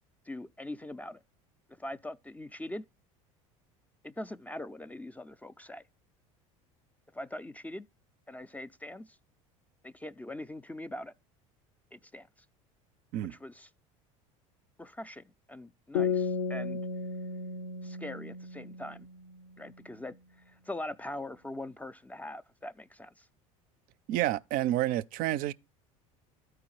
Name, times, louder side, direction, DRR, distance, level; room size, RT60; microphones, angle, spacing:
voice 1, 0.3-1.2 1.8-2.8 4.0-5.8 7.1-7.9 8.3-9.2 9.8-11.1 11.9-12.3 13.3-13.7 14.8-16.8 17.8-19.1 19.6-20.1 20.5-23.3, left 1 dB, 10° left, 0.3 m, -42 dB
sound 1, 15.9-19.4, left 5 dB, 80° left, 0.7 m, -34 dB
voice 2, 24.1-25.5, right 14 dB, 55° right, 0.4 m, -29 dB
13.0 x 4.8 x 3.1 m
hypercardioid pair, 80°, 17 cm